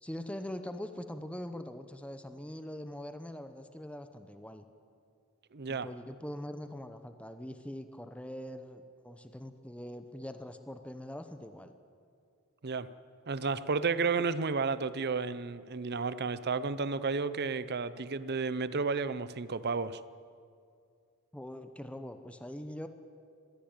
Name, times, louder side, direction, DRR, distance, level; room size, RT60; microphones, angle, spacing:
voice 1, 0.0-4.6 5.7-11.7 14.2-14.3 21.3-22.9, left 1 dB, 5° left, 8 dB, 0.8 m, -43 dB
voice 2, 5.5-5.9 12.6-12.9 13.3-20.0, right 4 dB, 45° right, 15 dB, 0.7 m, -32 dB
21.0 x 16.0 x 8.9 m, 2.3 s
head